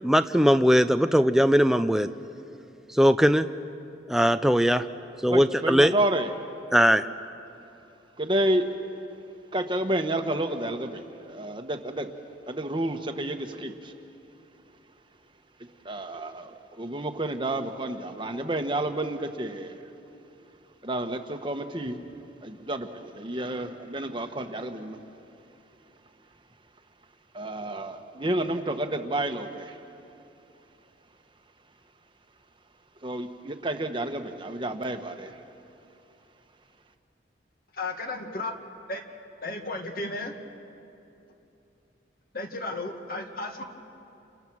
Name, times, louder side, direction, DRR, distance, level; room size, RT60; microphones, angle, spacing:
voice 1, 0.0-2.1 2.9-3.5 4.1-4.8 5.2-5.9 6.7-7.1, equal, 5° right, 9 dB, 0.5 m, -20 dB
voice 2, 5.3-6.3 8.2-8.6 9.5-12.1 12.5-13.9 15.8-19.8 20.8-22.0 22.4-25.0 27.3-29.8 33.0-35.4, right 1 dB, 25° right, 6 dB, 1.3 m, -30 dB
voice 3, 37.8-38.5 38.9-39.0 39.4-40.3 42.3-43.6, left 2 dB, 50° left, 3 dB, 2.2 m, -33 dB
29.5 x 29.0 x 6.2 m, 2.8 s
head